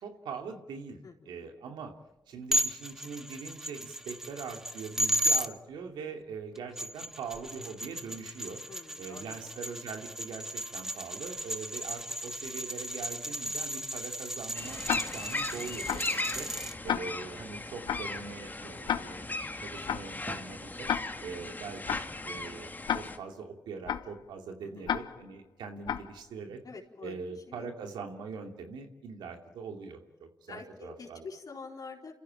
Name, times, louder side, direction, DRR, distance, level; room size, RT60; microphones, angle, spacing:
voice 1, 0.0-1.0 1.3-1.9 2.3-8.6 9.0-16.5 16.8-19.3 19.6-20.9 21.2-26.6 27.0-31.2, right 5 dB, 85° right, 4 dB, 2.6 m, -42 dB
voice 2, 1.0-1.6 8.7-9.4 24.6-24.9 26.6-27.7 30.5-32.1, left 4 dB, 55° left, 0 dB, 4.2 m, -46 dB
sound 1, 2.5-5.5 6.6-16.7, equal, 5° right, 1.3 m, -35 dB
sound 2, 14.5-23.2, left 2 dB, 25° left, 2.4 m, -38 dB
Tick-tock, 14.9-15.4 15.9-16.2 16.9-17.4 17.9-18.2 18.9-19.4 19.9-20.2 20.9-21.4 21.9-22.2 22.9-23.4 23.9-24.2 24.9-25.4 25.9-26.2, left 9 dB, 80° left, 0.9 m, -33 dB
29.0 x 15.0 x 8.8 m, 0.91 s
supercardioid pair, 50°, 7 cm